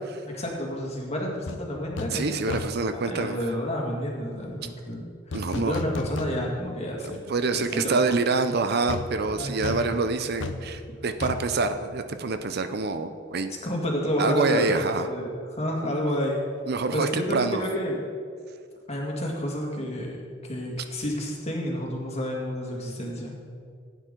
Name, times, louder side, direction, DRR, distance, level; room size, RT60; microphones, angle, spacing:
voice 1, 0.3-2.6 2.9-7.2 7.5-8.2 9.3-10.0 13.6-16.4 16.9-18.0 18.9-23.4, equal, 35° left, -1 dB, 2.0 m, -30 dB
sound 1, 1.5-1.6 2.0-2.2 2.5-2.9 5.3-6.7 7.1-7.2 8.9-12.5 12.8-12.9, left 3 dB, 80° left, 0.7 m, -35 dB
voice 2, 2.1-3.4 5.3-5.8 7.0-13.5 14.2-15.0 16.7-17.6, right 3 dB, 55° right, 9 dB, 0.6 m, -26 dB
15.5 x 9.1 x 3.8 m, 2.2 s
head